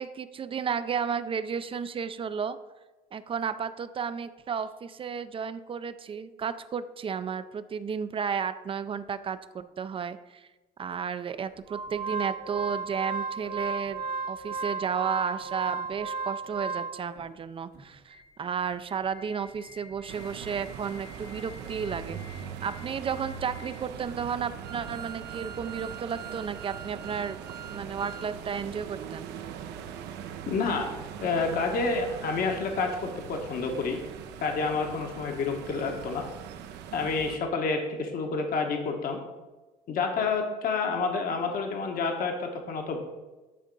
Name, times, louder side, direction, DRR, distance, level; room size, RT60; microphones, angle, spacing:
voice 1, 0.0-2.6 3.1-10.5 10.8-27.4 27.7-29.3, right 6 dB, 30° right, 12 dB, 0.4 m, -33 dB
Organ, 11.7-17.2 17.7-17.8 18.1-18.2 18.7-28.3 28.6-28.7, right 4 dB, 70° right, 2.2 m, -38 dB
sound 1, 20.1-37.4, right 8 dB, 85° right, 0.7 m, -41 dB
voice 2, 30.5-30.9 31.2-34.0 34.4-36.2 36.9-39.2 39.9-43.0, left 4 dB, 60° left, 3 dB, 1.2 m, -29 dB
10.0 x 3.7 x 5.2 m, 1.2 s
cardioid pair, 110°, 17 cm